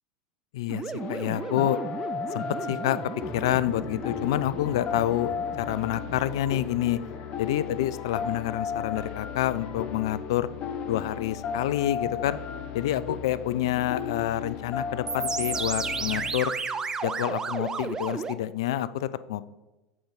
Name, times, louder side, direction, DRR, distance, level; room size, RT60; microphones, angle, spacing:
voice 1, 0.5-1.8 2.3-3.0 3.3-7.0 7.4-10.5 10.9-12.4 12.7-16.5 17.0-19.5, left 13 dB, 65° left, 16 dB, 0.3 m, -28 dB
sound 1, 0.7-6.8 15.1-18.3, right 5 dB, 20° right, 0.4 m, -34 dB
sound 2, 1.0-16.3, left 6 dB, 40° left, 0.7 m, -35 dB
7.6 x 5.0 x 4.0 m, 1.1 s
figure-of-eight pair, 80°, 3 cm